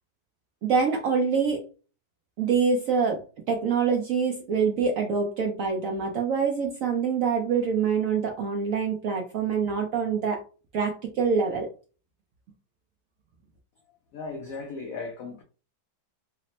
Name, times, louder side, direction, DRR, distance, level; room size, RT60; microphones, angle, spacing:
voice 1, 0.6-1.6 2.4-3.2 3.5-10.4 10.7-11.7, right 5 dB, 90° right, 0.7 m, -25 dB
voice 2, 14.1-15.4, left 4 dB, 85° left, 0.7 m, -36 dB
3.3 x 2.0 x 4.1 m
omnidirectional pair, 2.1 m